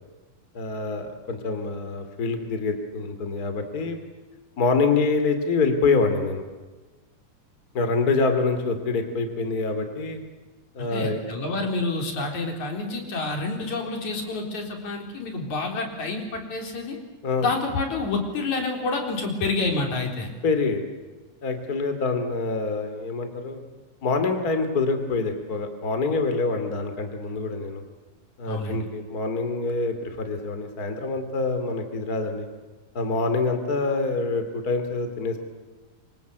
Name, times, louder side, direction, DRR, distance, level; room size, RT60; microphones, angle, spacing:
voice 1, 0.5-4.0 4.6-6.4 7.7-10.2 10.7-11.2 17.2-17.5 20.4-20.8 21.4-23.6 24.0-27.8 28.4-32.4 32.9-35.4, left 3 dB, 30° left, 7 dB, 2.9 m, -26 dB
voice 2, 10.8-17.0 17.4-20.3 28.5-28.8, left 3 dB, 60° left, 3 dB, 5.3 m, -28 dB
27.0 x 25.5 x 8.2 m, 1.3 s
omnidirectional pair, 3.8 m